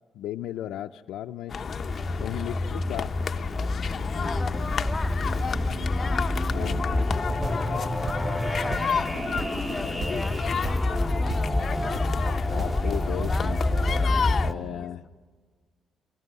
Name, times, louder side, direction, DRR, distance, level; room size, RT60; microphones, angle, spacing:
voice 1, 0.1-1.7 2.2-3.1 6.5-6.9 12.5-13.6 14.4-15.0, left 12 dB, 85° left, 2 dB, 0.6 m, -35 dB
sound 1, 1.5-14.5, left 6 dB, 45° left, 0.8 m, -32 dB
sound 2, 1.6-14.5, left 1 dB, 5° right, 2.9 m, -28 dB
voice 2, 4.2-6.3 7.2-12.1 13.3-14.9, left 2 dB, 15° left, 5 dB, 2.0 m, -40 dB
sound 3, 7.1-8.5 8.7-9.7 10.0-10.4 10.6-11.0 11.3-11.7 11.9-12.3 12.6-14.1, right 4 dB, 30° right, 0.7 m, -36 dB
29.0 x 24.0 x 5.4 m, 1.5 s
cardioid pair, 90°, 0 cm